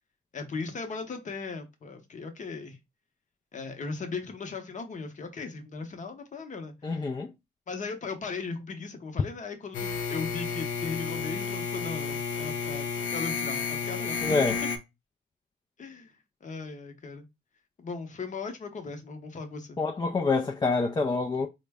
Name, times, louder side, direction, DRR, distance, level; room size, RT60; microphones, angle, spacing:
voice 1, 0.3-2.8 3.5-7.1 7.7-14.5 15.8-16.1 16.4-17.3 17.8-19.8, left 4 dB, 40° left, 0.8 m, -38 dB
voice 2, 6.8-7.3 14.2-14.6 19.8-21.5, left 3 dB, 20° left, 0.4 m, -26 dB
sound 1, 9.7-14.8, left 5 dB, 75° left, 0.7 m, -31 dB
3.8 x 2.1 x 3.4 m
cardioid pair, 90°, 20 cm